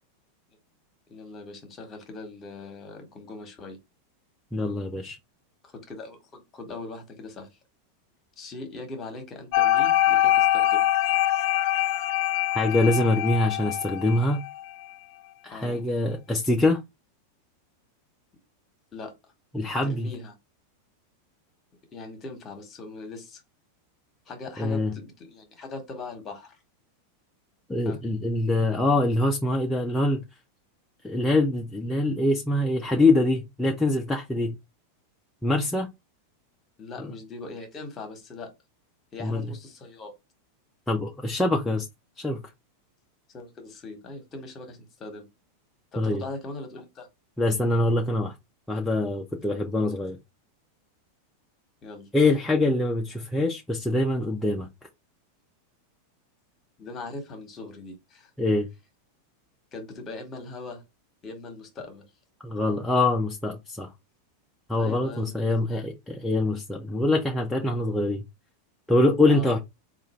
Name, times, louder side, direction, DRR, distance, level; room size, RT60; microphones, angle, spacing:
voice 1, 1.1-3.8 5.6-7.6 8.4-10.8 15.5-15.8 18.9-19.1 19.8-20.3 21.9-23.4 24.3-26.6 27.8-28.0 36.8-38.5 39.1-40.2 43.3-45.3 45.9-47.1 51.8-52.1 56.8-58.3 59.7-60.8 61.2-62.0 64.8-65.9 69.3-69.5, left 3 dB, 30° left, 1.4 m, -40 dB
voice 2, 4.5-5.2 12.5-14.4 15.4-16.8 19.5-20.1 24.6-24.9 27.7-30.2 31.0-34.6 35.4-35.9 37.0-37.1 39.2-39.5 40.9-41.9 42.2-42.4 46.0-46.2 47.4-48.3 48.7-50.2 52.1-54.7 58.4-58.7 62.4-63.9 64.7-68.2 68.9-69.6, left 2 dB, 5° left, 0.6 m, -24 dB
sound 1, 9.5-14.6, left 13 dB, 55° left, 0.4 m, -23 dB
3.7 x 2.5 x 4.3 m
supercardioid pair, 130°, 0 cm